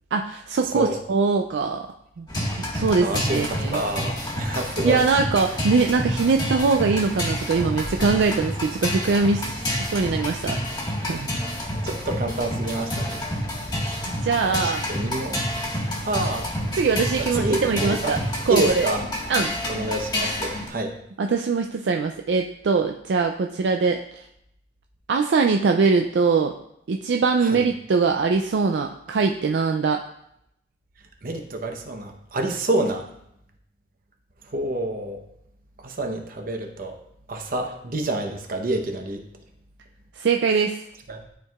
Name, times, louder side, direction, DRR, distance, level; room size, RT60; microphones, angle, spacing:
voice 1, 0.1-1.9 2.2-2.4 2.7-3.8 4.8-10.6 11.0-11.3 14.1-14.9 16.7-18.9 19.3-19.5 21.2-24.0 25.1-26.5 26.9-30.0 40.2-40.8, right 4 dB, 75° right, 4 dB, 0.4 m, -22 dB
voice 2, 0.6-1.0 3.0-5.0 9.7-9.8 11.3-11.4 11.8-13.2 14.5-15.5 16.0-16.5 17.2-18.2 18.5-19.0 19.7-20.9 27.4-27.6 31.2-33.1 34.4-35.2 35.8-37.0 37.3-39.2 41.1-41.2, right 2 dB, 55° right, 4 dB, 0.9 m, -28 dB
sound 1, 2.3-20.7, equal, 25° left, 1.5 m, -28 dB
11.5 x 4.5 x 2.4 m, 0.76 s
head